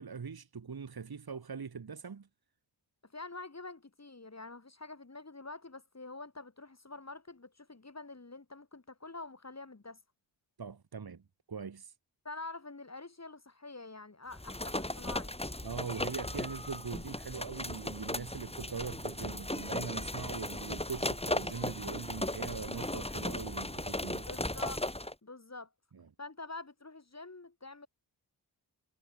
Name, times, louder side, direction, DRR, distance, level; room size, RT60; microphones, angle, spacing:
voice 1, 0.0-2.3 10.6-11.2 11.5-11.9 15.6-24.3 25.9-26.1, right 6 dB, 60° right, 2.4 m, -41 dB
voice 2, 3.0-10.0 12.2-15.3 24.2-24.8 25.2-25.7 26.2-27.9, left 3 dB, 40° left, 6.7 m, -46 dB
sound 1, 14.3-25.1, left 1 dB, 15° left, 4.5 m, -37 dB
cardioid pair, 60°, 42 cm